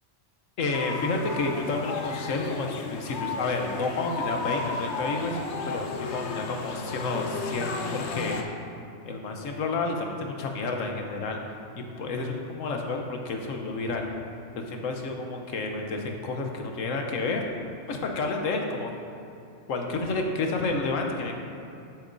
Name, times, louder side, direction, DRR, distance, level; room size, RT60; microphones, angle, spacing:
voice 1, 0.6-5.4 5.6-8.5 9.1-11.4 11.8-14.1 14.7-17.4 17.9-18.9 19.7-21.3, left 3 dB, 80° left, 2 dB, 1.3 m, -30 dB
sound 1, 0.7-8.4, left 4 dB, 65° left, 1.0 m, -34 dB
12.0 x 7.5 x 2.7 m, 2.7 s
omnidirectional pair, 1.3 m